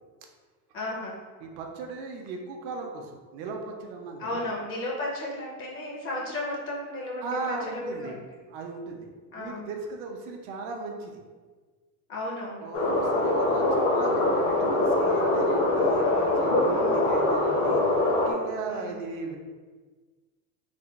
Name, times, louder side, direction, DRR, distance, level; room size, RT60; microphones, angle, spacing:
voice 1, 0.7-1.2 4.2-8.2 9.3-9.7 12.1-12.7 16.0-16.4 16.7-17.1 18.7-19.1, left 1 dB, 30° left, -3 dB, 0.5 m, -34 dB
voice 2, 1.4-4.5 7.2-8.2 8.5-11.2 12.6-17.8 18.3-19.4, right 3 dB, 55° right, 2 dB, 0.5 m, -37 dB
sound 1, 12.7-18.3, left 2 dB, 65° left, 0.8 m, -23 dB
3.4 x 2.2 x 3.9 m, 1.4 s
cardioid pair, 175°, 42 cm